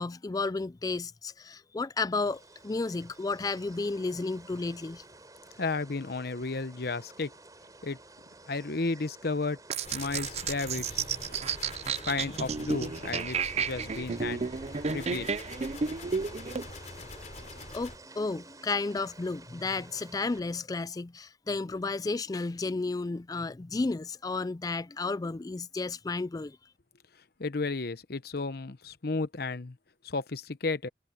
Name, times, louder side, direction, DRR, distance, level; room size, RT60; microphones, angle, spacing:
voice 1, 0.0-5.0 17.7-26.6, left 3 dB, 20° left, 0.3 m, -32 dB
sound 1, 2.3-20.4, right 2 dB, 20° right, 6.3 m, -52 dB
voice 2, 5.6-7.3 7.8-8.0 8.5-9.6 9.9-11.1 12.0-14.4 14.9-15.3 27.4-29.8 30.0-30.9, left 3 dB, 60° left, 0.9 m, -33 dB
sound 2, 9.7-16.6, right 5 dB, 35° right, 0.5 m, -32 dB
sound 3, 9.8-18.0, left 3 dB, 40° left, 3.6 m, -45 dB
head